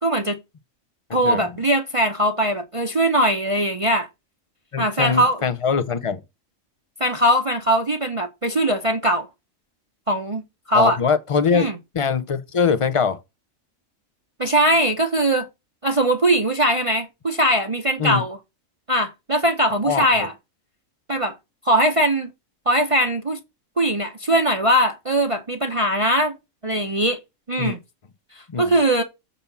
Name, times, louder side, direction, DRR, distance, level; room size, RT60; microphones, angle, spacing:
voice 1, 0.0-0.4 1.1-4.1 4.8-5.4 7.0-9.3 10.1-10.4 10.7-11.0 11.5-11.7 14.4-15.5 15.8-18.4 18.9-20.3 21.1-21.3 21.6-22.3 22.7-23.4 23.8-26.3 26.6-27.2 27.5-27.8 28.4-29.0, right 1 dB, 30° right, 0.7 m, -20 dB
voice 2, 1.1-1.4 4.7-6.2 10.7-11.7 11.9-13.2 18.0-18.2 19.8-20.3 27.6-27.8 28.5-28.7, left 6 dB, 55° left, 0.3 m, -22 dB
7.0 x 4.2 x 5.4 m
omnidirectional pair, 1.4 m